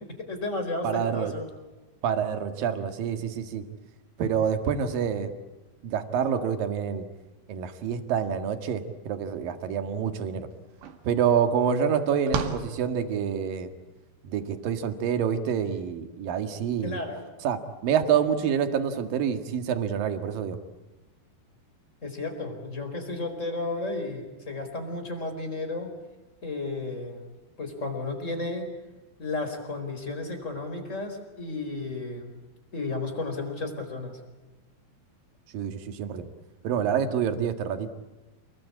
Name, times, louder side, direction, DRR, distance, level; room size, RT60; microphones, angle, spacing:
voice 1, 0.2-1.5 16.8-17.3 22.0-25.9 26.4-27.3 27.6-28.7 29.2-32.4 32.7-34.2 36.7-36.9, left 2 dB, 15° left, 5 dB, 4.4 m, -33 dB
voice 2, 0.8-1.3 2.0-3.7 4.2-5.3 5.8-7.1 7.5-10.5 11.1-13.7 14.2-17.0 17.4-20.6 35.5-36.3 36.6-37.9, right 7 dB, 60° right, 8 dB, 3.3 m, -27 dB
sound 1, 10.2-10.3 10.5-13.6, right 6 dB, 85° right, 4.2 m, -36 dB
29.5 x 21.5 x 8.7 m, 1.1 s
omnidirectional pair, 4.8 m